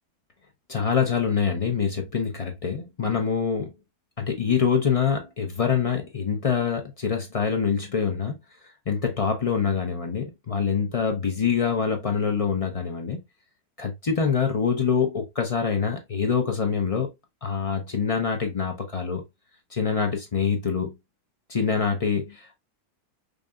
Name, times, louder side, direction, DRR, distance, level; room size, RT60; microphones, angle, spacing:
voice 1, 0.7-3.7 4.2-8.4 8.9-13.2 13.8-17.1 17.4-19.2 19.7-20.9 21.5-22.5, left 6 dB, 50° left, 0.4 m, -25 dB
5.1 x 2.6 x 2.3 m
omnidirectional pair, 1.6 m